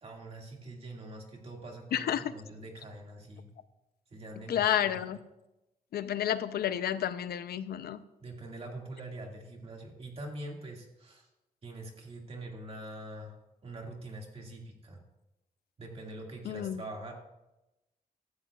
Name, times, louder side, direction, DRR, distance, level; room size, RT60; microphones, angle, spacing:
voice 1, 0.0-3.5 4.1-5.0 8.2-11.3 11.6-13.4 13.6-15.0 15.8-17.1, right 1 dB, 40° right, 2.1 m, -44 dB
voice 2, 1.9-2.2 4.5-5.2 5.9-8.0 16.4-16.8, left 10 dB, 90° left, 0.6 m, -30 dB
15.0 x 13.5 x 2.4 m
wide cardioid pair, 155°, 16 cm